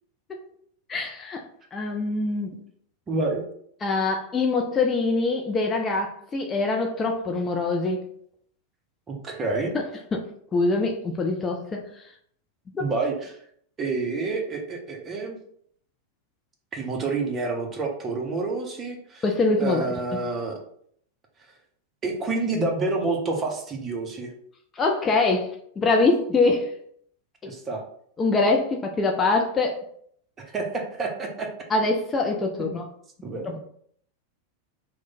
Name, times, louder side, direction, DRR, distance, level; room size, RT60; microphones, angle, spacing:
voice 1, 0.9-1.4 1.7-2.5 3.8-8.0 9.7-9.9 10.1-10.2 10.5-12.1 12.7-12.8 19.2-20.2 24.7-26.7 27.4-27.5 28.2-29.8 31.7-32.8 33.4-33.6, left 3 dB, 20° left, 2 dB, 0.4 m, -24 dB
voice 2, 3.1-3.4 9.1-9.7 12.8-13.4 13.8-15.4 16.7-19.2 19.6-20.5 22.0-24.3 27.5-27.8 30.4-31.5 33.2-33.6, right 3 dB, 25° right, 1 dB, 0.7 m, -28 dB
3.0 x 2.2 x 4.0 m, 0.65 s
figure-of-eight pair, 90°, 0 cm